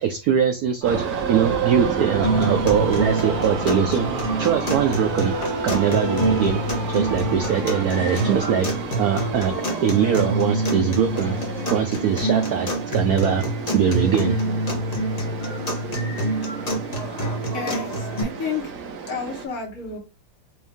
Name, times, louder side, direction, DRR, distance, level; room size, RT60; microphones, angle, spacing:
voice 1, 0.0-4.1 4.4-5.3 5.6-6.6 6.9-8.7 9.0-11.4 11.7-13.4 13.7-14.4, right 8 dB, 80° right, 7 dB, 0.8 m, -22 dB
Male singing / Female singing / Musical instrument, 0.8-8.5, equal, 40° right, 2.2 m, -33 dB
sound 1, 0.8-19.5, right 6 dB, 60° right, 1.1 m, -31 dB
sound 2, 2.2-18.2, right 1 dB, 30° left, 0.7 m, -26 dB
voice 2, 17.5-18.7 19.1-20.0, left 5 dB, 55° left, 0 dB, 1.5 m, -31 dB
4.5 x 2.6 x 3.4 m, 0.29 s
omnidirectional pair, 2.1 m